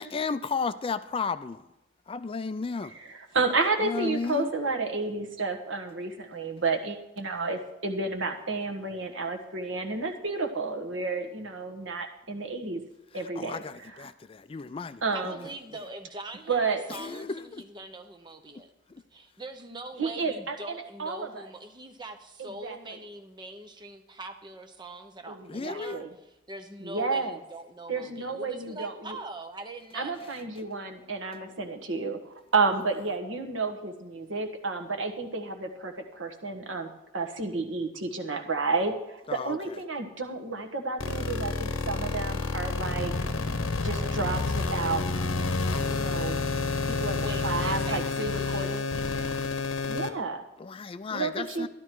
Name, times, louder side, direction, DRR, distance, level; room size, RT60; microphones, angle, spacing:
voice 1, 0.0-1.6 2.1-2.9 3.8-4.5 13.4-15.0 16.9-17.6 25.5-26.0 39.3-39.6 50.6-51.7, left 5 dB, 30° left, 13 dB, 0.3 m, -33 dB
voice 2, 2.8-12.8 13.1-14.1 15.0-15.4 16.5-16.8 20.0-21.5 22.4-22.8 25.3-26.1 26.8-27.4 27.9-29.2 29.9-43.1 43.8-45.1 45.9-46.4 46.8-48.8 49.9-50.5 51.1-51.7, right 3 dB, 75° right, 5 dB, 1.4 m, -31 dB
voice 3, 15.1-18.7 19.1-30.2 47.2-49.4, right 2 dB, 20° right, 6 dB, 0.9 m, -43 dB
sound 1, 41.0-50.1, left 3 dB, 75° left, 1.0 m, -29 dB
12.5 x 12.0 x 4.6 m, 0.96 s
head